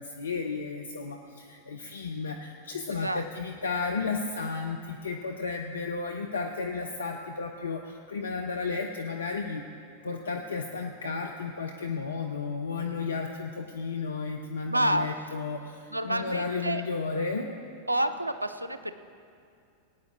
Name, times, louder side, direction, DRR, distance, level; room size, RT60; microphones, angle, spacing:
voice 1, 0.0-9.6 10.0-17.5, left 4 dB, 75° left, 3 dB, 0.6 m, -33 dB
voice 2, 14.7-15.2 15.9-16.8 17.9-18.9, right 1 dB, 85° right, 11 dB, 0.5 m, -28 dB
18.0 x 9.4 x 3.8 m, 2.4 s
figure-of-eight pair, 90°, 0 cm